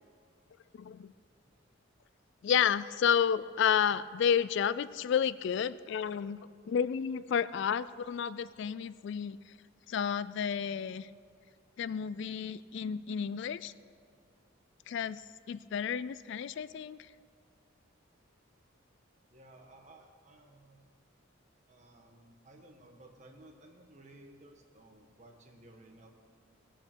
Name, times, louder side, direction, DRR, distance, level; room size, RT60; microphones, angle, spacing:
voice 1, 0.8-1.1 2.4-9.4 9.9-11.1 11.8-13.7 14.9-15.2 15.5-17.0, left 8 dB, 55° left, 16 dB, 0.3 m, -31 dB
voice 2, 19.3-20.8 21.7-26.1, right 1 dB, 35° right, 2 dB, 1.5 m, -56 dB
19.5 x 6.8 x 6.1 m, 2.2 s
head